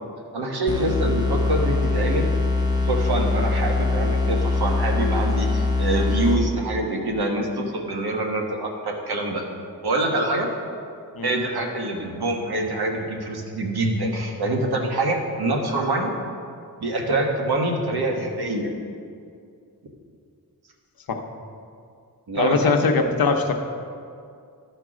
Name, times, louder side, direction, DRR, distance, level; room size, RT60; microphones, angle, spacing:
voice 1, 0.3-2.3 2.8-9.4 9.8-10.5 11.2-16.1 16.8-18.7 22.3-22.7, right 2 dB, 85° right, 1 dB, 1.3 m, -25 dB
sound 1, 0.7-6.7, left 3 dB, 10° right, 0.8 m, -23 dB
voice 2, 22.3-23.5, left 4 dB, 70° left, 4 dB, 0.9 m, -21 dB
12.5 x 4.5 x 6.1 m, 2.3 s
wide cardioid pair, 155°, 37 cm